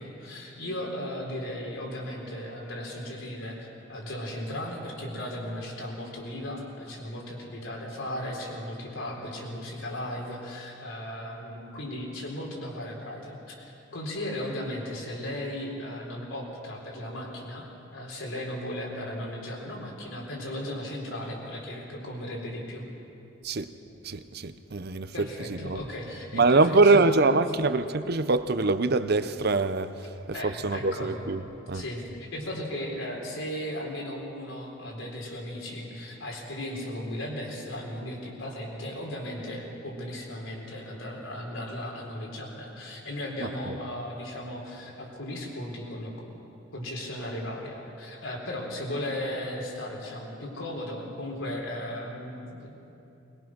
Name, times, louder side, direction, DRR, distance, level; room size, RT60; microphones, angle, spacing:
voice 1, 0.0-17.7 17.9-22.8 25.1-27.3 30.3-31.3 31.7-46.3 46.7-52.9, left 1 dB, 85° left, -1 dB, 4.2 m, -36 dB
voice 2, 24.0-25.8 26.3-29.9 30.3-31.4 31.7-31.8 43.4-43.8, right 3 dB, 55° right, 12 dB, 0.7 m, -24 dB
21.5 x 20.5 x 6.2 m, 2.9 s
head